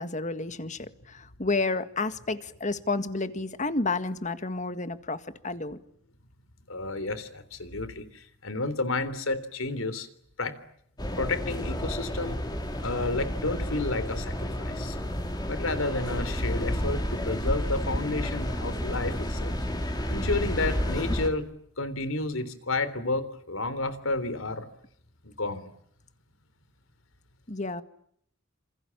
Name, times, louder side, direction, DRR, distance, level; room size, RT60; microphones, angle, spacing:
voice 1, 0.0-5.8 27.5-27.8, left 3 dB, 35° left, 11 dB, 1.8 m, -30 dB
voice 2, 6.7-10.1 10.4-10.5 11.2-12.4 12.8-15.0 15.5-21.5 21.8-24.7 25.2-25.6, left 2 dB, 90° left, 14 dB, 3.5 m, -31 dB
sound 1, 11.0-21.3, equal, 20° left, 3.3 m, -31 dB
28.0 x 27.5 x 7.3 m, 0.69 s
head